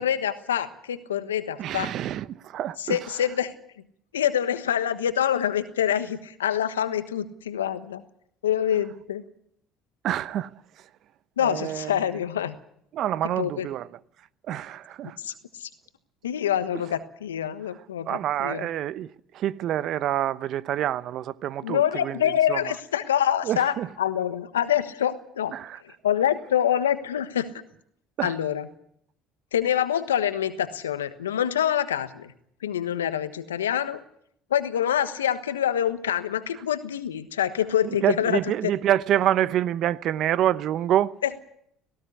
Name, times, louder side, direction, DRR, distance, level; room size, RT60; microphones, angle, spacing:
voice 1, 0.0-1.9 2.8-3.5 4.1-8.0 8.4-9.2 11.4-12.5 13.4-13.7 15.2-15.3 15.6-15.7 16.2-18.7 21.6-25.5 26.0-27.5 28.2-28.7 29.5-32.3 32.6-34.0 34.5-38.4 41.2-41.4, left 10 dB, 90° left, 1.3 m, -26 dB
voice 2, 1.6-3.0 10.0-10.5 11.4-11.9 12.9-13.9 14.5-15.2 18.1-22.6 23.4-23.9 25.5-25.8 28.2-28.3 37.8-41.1, right 11 dB, 55° right, 0.8 m, -27 dB
18.0 x 17.0 x 9.7 m
hypercardioid pair, 65°, 0 cm